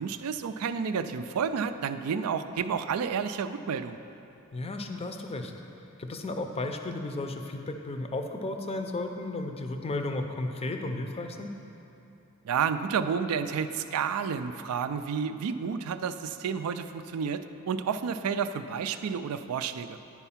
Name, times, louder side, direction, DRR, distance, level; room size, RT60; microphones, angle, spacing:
voice 1, 0.0-4.0 12.4-20.0, right 6 dB, 80° right, 11 dB, 0.4 m, -30 dB
voice 2, 4.5-5.5 6.0-11.6, left 2 dB, 25° left, 5 dB, 0.5 m, -34 dB
9.7 x 4.5 x 5.7 m, 2.9 s
head